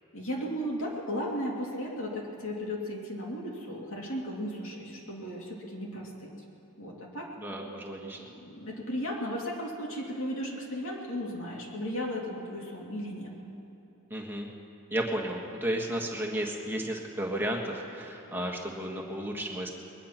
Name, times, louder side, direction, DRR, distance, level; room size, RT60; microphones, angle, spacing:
voice 1, 0.1-6.3 6.8-7.8 8.3-13.3, equal, 60° left, -3 dB, 2.6 m, -35 dB
voice 2, 7.4-8.2 14.1-14.5 14.9-19.7, right 1 dB, 10° right, -1 dB, 1.6 m, -33 dB
21.5 x 10.0 x 5.9 m, 2.9 s
head